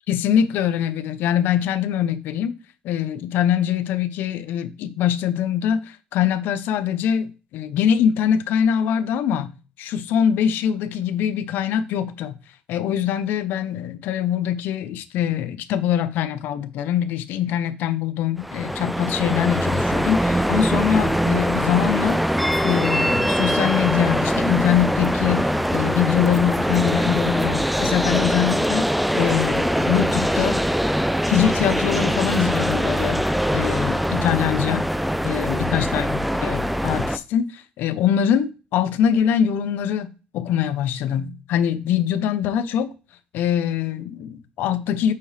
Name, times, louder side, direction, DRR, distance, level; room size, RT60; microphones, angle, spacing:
voice 1, 0.1-2.6 2.8-9.5 9.8-12.4 12.7-22.2 22.6-30.6 31.3-33.2 33.5-34.9 35.2-42.9 43.3-45.1, left 9 dB, 75° left, 0.7 m, -23 dB
sound 1, 18.4-37.2, equal, ahead, 0.4 m, -22 dB
8.4 x 4.8 x 3.3 m
cardioid pair, 90°, 3 cm